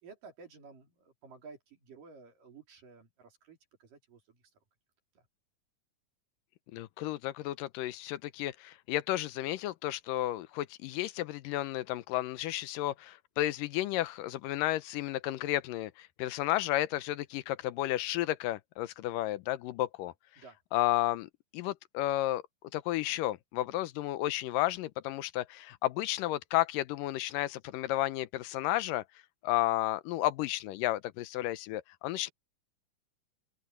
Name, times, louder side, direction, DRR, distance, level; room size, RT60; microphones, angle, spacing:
voice 1, 0.0-4.4 5.2-5.3 20.4-20.6, right 4 dB, 85° right, 5.5 m, -53 dB
voice 2, 6.7-20.1 20.7-21.3 21.5-22.4 22.7-29.0 29.4-32.3, left 15 dB, 90° left, 2.5 m, -32 dB
open air
omnidirectional pair, 3.7 m